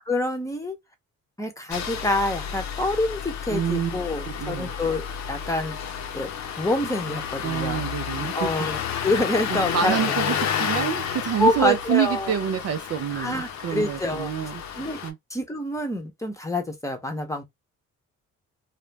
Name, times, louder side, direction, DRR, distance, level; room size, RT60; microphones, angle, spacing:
voice 1, 0.1-0.8 1.4-5.8 6.1-6.3 6.6-7.9 8.3-10.0 10.7-10.9 11.4-12.3 13.1-14.3 14.8-15.0 15.3-17.4, left 1 dB, 10° left, 0.8 m, -27 dB
Engine starting, 1.7-15.1, left 8 dB, 65° left, 0.7 m, -31 dB
voice 2, 3.5-4.0 4.4-4.7 7.4-8.5 9.5-14.6 15.0-15.2, right 9 dB, 55° right, 0.5 m, -27 dB
2.5 x 2.0 x 3.1 m
cardioid pair, 90°, 30 cm